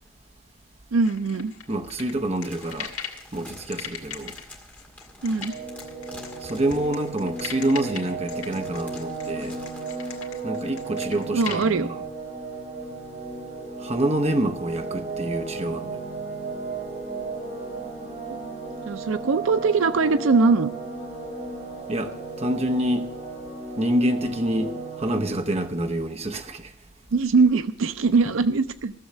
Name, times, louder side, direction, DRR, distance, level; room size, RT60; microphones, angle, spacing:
voice 1, 0.9-1.5 5.2-5.5 11.3-11.9 18.9-20.7 27.1-28.9, right 4 dB, 70° right, 0.5 m, -21 dB
sound 1, 1.0-3.2 3.7-11.7, left 8 dB, 80° left, 2.1 m, -38 dB
voice 2, 1.7-2.9 3.3-4.4 6.4-9.6 10.4-12.0 13.8-15.9 21.9-23.1 23.8-26.7, right 1 dB, 30° right, 0.8 m, -27 dB
sound 2, 2.2-10.2, left 1 dB, 5° left, 1.8 m, -48 dB
sound 3, 5.5-25.3, right 3 dB, 50° right, 6.0 m, -35 dB
15.0 x 7.2 x 6.6 m
head